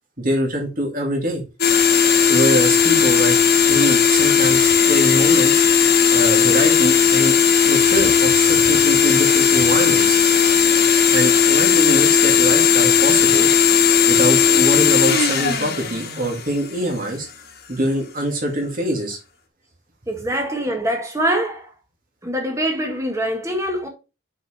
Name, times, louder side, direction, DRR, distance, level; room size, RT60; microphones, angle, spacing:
voice 1, 0.2-1.4 2.3-3.4 3.7-5.6 6.1-7.3 7.7-10.2 11.1-13.5 14.1-17.3 17.7-19.2, right 1 dB, 40° right, 2.3 m, -23 dB
sound 1, 1.6-16.8, left 7 dB, 50° left, 1.5 m, -16 dB
voice 2, 20.1-21.7 22.2-23.9, right 1 dB, 15° right, 1.5 m, -24 dB
6.4 x 5.1 x 4.3 m
head